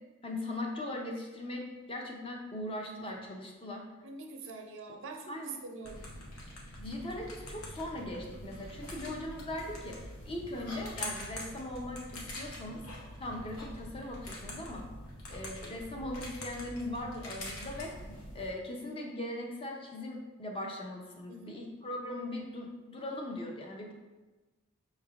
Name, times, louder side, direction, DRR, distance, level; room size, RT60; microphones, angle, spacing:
voice 1, 0.2-3.8 5.3-5.5 6.8-10.0 10.3-12.8 13.2-14.9 15.3-17.9 18.3-23.9, left 1 dB, 25° left, 0 dB, 0.5 m, -39 dB
voice 2, 4.0-6.1 21.3-21.6, right 4 dB, 60° right, 3 dB, 0.5 m, -45 dB
sound 1, 5.8-18.5, left 1 dB, 70° left, 0.8 m, -44 dB
5.5 x 3.2 x 2.4 m, 1.2 s
head